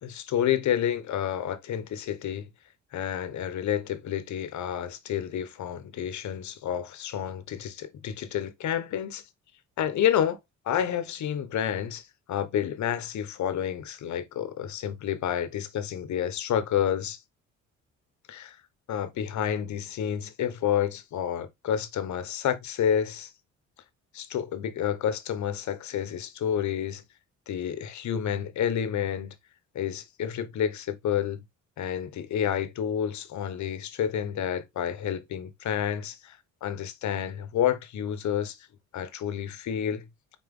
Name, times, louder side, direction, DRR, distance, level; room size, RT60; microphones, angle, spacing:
voice 1, 0.0-2.5 2.9-9.2 9.8-10.4 10.6-17.2 18.3-18.6 18.9-23.3 24.1-27.0 27.5-29.3 29.7-31.4 31.8-38.7 38.9-40.0, left 9 dB, 70° left, 1.1 m, -29 dB
5.8 x 4.5 x 3.6 m
cardioid pair, 90°, 30 cm